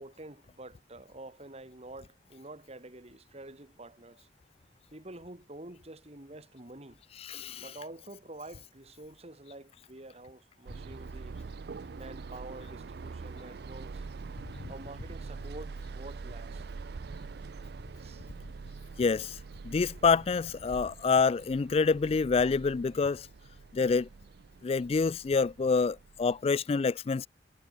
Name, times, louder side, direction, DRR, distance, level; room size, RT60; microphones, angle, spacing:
voice 1, 0.0-4.3 4.9-7.0 7.6-11.4 11.9-14.1 14.7-16.7 18.0-18.3, right 2 dB, 35° right, 2.4 m, -48 dB
voice 2, 7.3-7.6 19.0-19.4 19.6-23.3 23.7-24.1 24.6-27.3, left 4 dB, 35° left, 0.3 m, -27 dB
sound 1, 10.7-26.5, right 4 dB, 60° right, 0.5 m, -44 dB
head